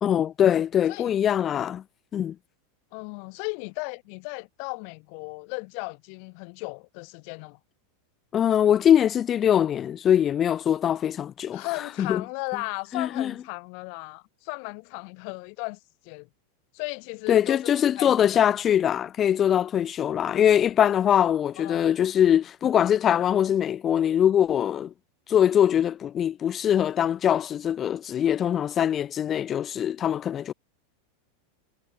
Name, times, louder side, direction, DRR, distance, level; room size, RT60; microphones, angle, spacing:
voice 1, 0.0-1.8 2.1-2.4 8.3-11.7 12.0-12.2 12.9-13.3 17.3-24.9 25.3-30.5, left 9 dB, 20° left, 0.5 m, -22 dB
voice 2, 2.9-7.6 11.5-16.3 16.7-17.7 18.0-18.5 21.6-21.9, left 40 dB or more, 45° left, 4.4 m, -36 dB
supercardioid pair, 170°, 0 cm